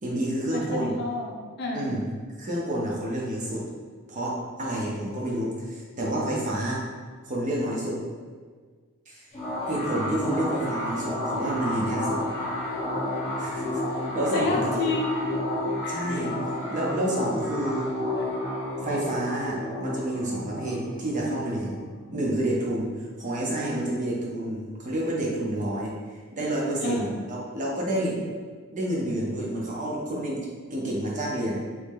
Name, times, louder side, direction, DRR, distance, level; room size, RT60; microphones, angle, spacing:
voice 1, 0.0-0.9 1.7-2.0 2.4-3.6 4.1-6.8 7.2-8.0 9.1-9.2 9.7-12.2 13.4-13.8 14.1-14.9 15.9-16.3 16.7-17.9 18.8-21.8 22.1-22.9 23.2-25.9 26.3-28.2 28.7-30.5 30.7-31.6, right 1 dB, 35° right, -4 dB, 0.7 m, -29 dB
voice 2, 0.5-1.9 14.3-15.3 15.8-16.0 26.8-27.2, left 3 dB, 50° left, -1 dB, 0.6 m, -30 dB
sound 1, 9.3-22.6, left 1 dB, 25° left, 0.9 m, -31 dB
3.1 x 2.6 x 3.5 m, 1.5 s
head